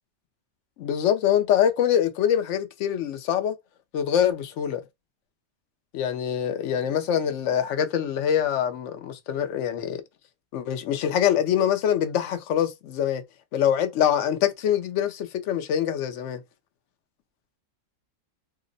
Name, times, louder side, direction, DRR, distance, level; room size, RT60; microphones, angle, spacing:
voice 1, 0.8-3.5 3.9-4.8 5.9-10.0 10.5-13.2 13.5-16.4, left 9 dB, 65° left, 0.8 m, -24 dB
2.8 x 2.0 x 3.8 m
omnidirectional pair, 1.5 m